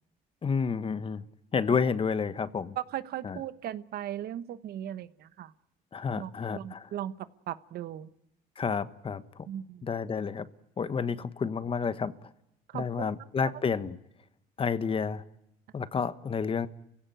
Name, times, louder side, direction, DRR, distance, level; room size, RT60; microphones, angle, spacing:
voice 1, 0.4-1.2 1.5-2.8 3.2-3.4 5.9-6.9 8.6-9.2 9.8-10.5 10.8-12.3 12.7-13.9 14.6-15.2 15.7-16.7, left 6 dB, 30° left, 1.3 m, -30 dB
voice 2, 2.8-5.5 6.2-8.1 9.5-9.9 12.7-13.1, right 11 dB, 65° right, 1.1 m, -38 dB
29.5 x 16.5 x 9.3 m
cardioid pair, 110°, 17 cm